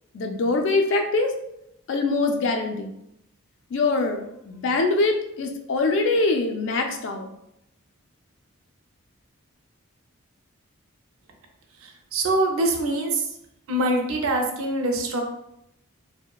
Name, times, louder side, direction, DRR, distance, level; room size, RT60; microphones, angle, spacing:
voice 1, 0.1-1.3 1.9-2.9 3.7-7.3, left 3 dB, 55° left, 4 dB, 0.3 m, -23 dB
voice 2, 11.7-13.4 13.7-15.2, right 1 dB, 75° right, 3 dB, 0.5 m, -24 dB
2.9 x 2.0 x 2.2 m, 0.79 s
head